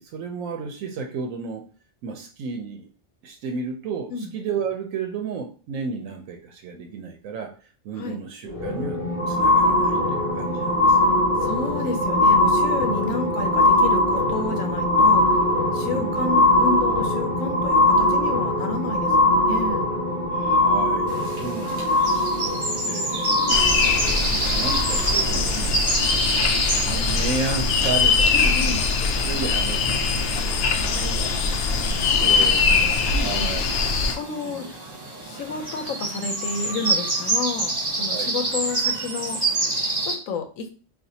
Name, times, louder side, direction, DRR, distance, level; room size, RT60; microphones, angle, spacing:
voice 1, 0.0-1.6 2.0-2.9 3.2-7.5 7.8-9.0 9.3-11.1 15.8-16.4 20.3-22.6 22.9-23.6 24.1-25.7 26.1-28.8 29.2-33.6 34.4-34.7 38.1-38.3, right 5 dB, 85° right, 4 dB, 1.0 m, -33 dB
sound 1, 8.5-25.3 26.1-26.2, left 1 dB, 45° left, 1.3 m, -21 dB
voice 2, 11.4-15.4 15.7-19.9 23.4-23.6 25.2-25.7 28.3-28.8 32.0-33.5 34.2-34.8 35.2-39.4 40.0-40.7, left 3 dB, 80° left, 6 dB, 1.1 m, -31 dB
sound 2, 21.1-40.1, right 2 dB, 35° right, 1.1 m, -29 dB
sound 3, 23.5-34.2, left 4 dB, 65° left, 0.7 m, -22 dB
4.2 x 2.5 x 2.7 m, 0.38 s
omnidirectional pair, 1.4 m